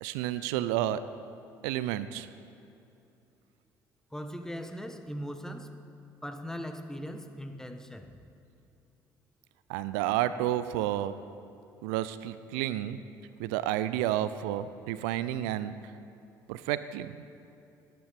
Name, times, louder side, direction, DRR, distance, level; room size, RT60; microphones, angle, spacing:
voice 1, 0.0-1.1 1.6-2.3 9.7-11.2 11.8-13.0 13.4-15.7 16.5-17.1, right 13 dB, 75° right, 14 dB, 0.4 m, -30 dB
voice 2, 4.1-5.7 6.2-8.1, equal, 5° left, 7 dB, 1.1 m, -39 dB
17.0 x 11.0 x 3.4 m, 2.7 s
hypercardioid pair, 55°, 11 cm